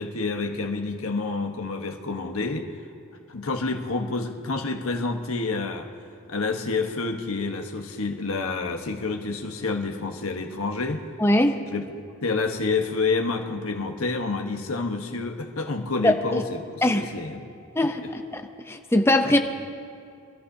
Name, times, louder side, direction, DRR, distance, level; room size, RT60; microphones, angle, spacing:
voice 1, 0.0-2.7 3.3-5.9 6.3-11.0 11.7-11.8 12.2-17.4 18.0-18.1 19.3-19.4, left 3 dB, 80° left, 4 dB, 1.2 m, -28 dB
voice 2, 11.2-11.6 16.0-16.4 16.8-17.1 17.8-19.4, left 1 dB, 10° left, 6 dB, 0.7 m, -22 dB
25.5 x 14.0 x 2.8 m, 2.4 s
head